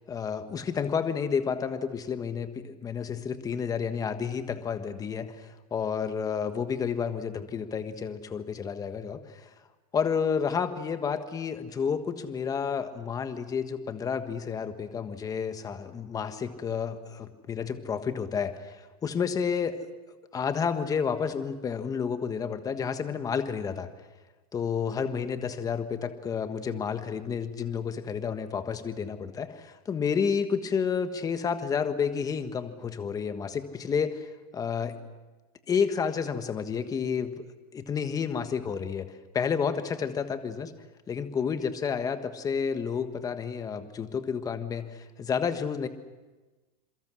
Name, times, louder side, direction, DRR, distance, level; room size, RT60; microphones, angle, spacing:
voice 1, 0.0-9.5 9.9-19.8 20.3-23.9 24.5-34.9 35.7-37.3 37.7-40.7 41.1-45.9, left 6 dB, 15° left, 9 dB, 1.5 m, -30 dB
28.0 x 23.0 x 6.3 m, 1.2 s
supercardioid pair, 145°, 20 cm